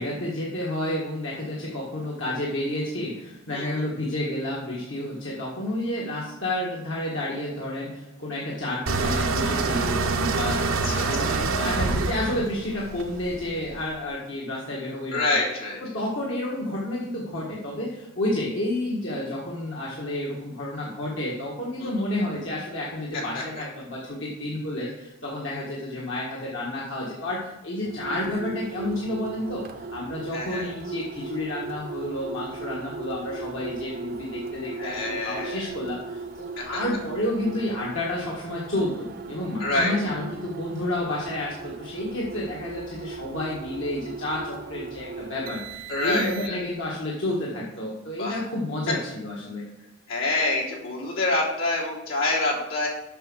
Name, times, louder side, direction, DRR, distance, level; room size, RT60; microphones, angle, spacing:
voice 1, 0.0-15.2 15.8-49.7, left 1 dB, 65° left, -4 dB, 1.7 m, -30 dB
sound 1, 8.9-13.8, right 3 dB, 85° right, 0.8 m, -26 dB
voice 2, 10.6-11.5 15.1-15.8 21.8-21.9 23.1-23.6 30.3-30.7 34.8-35.6 36.6-36.8 39.6-40.2 45.9-46.6 48.2-48.4 50.1-52.9, left 2 dB, 85° left, -6 dB, 3.5 m, -27 dB
sound 2, 27.8-46.8, right 4 dB, 45° right, 0.6 m, -38 dB
7.8 x 6.3 x 6.2 m, 0.93 s
head